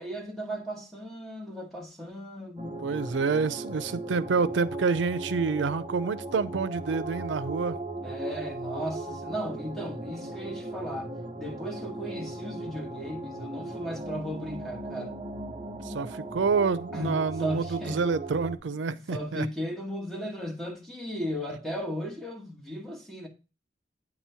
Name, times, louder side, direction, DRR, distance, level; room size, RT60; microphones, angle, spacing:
voice 1, 0.0-2.8 8.0-11.1 11.4-15.1 16.9-18.0 18.9-23.3, equal, ahead, 1.3 m, -36 dB
sound 1, 2.6-18.6, right 2 dB, 25° right, 0.6 m, -38 dB
voice 2, 2.8-7.8 15.8-19.5, right 5 dB, 85° right, 0.5 m, -28 dB
8.7 x 3.0 x 5.5 m
head